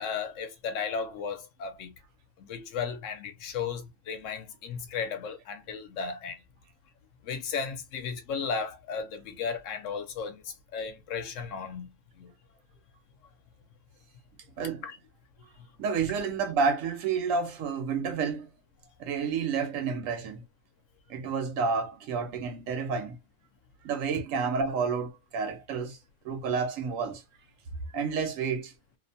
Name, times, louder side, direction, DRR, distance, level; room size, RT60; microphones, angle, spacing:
voice 1, 0.0-1.9 2.4-6.4 7.2-10.4 10.7-11.9 12.2-12.3 14.8-15.0, left 6 dB, 70° left, 0.9 m, -35 dB
voice 2, 15.8-18.5 19.0-20.4 21.1-23.2 23.8-26.0 26.2-27.2 27.9-28.7, right 5 dB, 75° right, 1.0 m, -30 dB
2.7 x 2.1 x 2.5 m
omnidirectional pair, 1.4 m